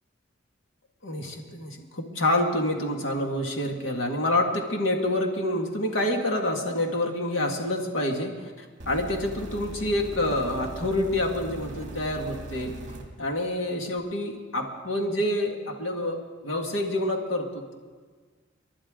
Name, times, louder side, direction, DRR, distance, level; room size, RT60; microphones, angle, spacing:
voice 1, 1.0-8.3 8.9-12.7 13.2-17.7, left 1 dB, 70° left, 2 dB, 1.9 m, -27 dB
sound 1, 8.8-13.0 14.0-14.1, right 1 dB, 35° right, 2.1 m, -40 dB
29.0 x 11.5 x 3.8 m, 1.5 s
head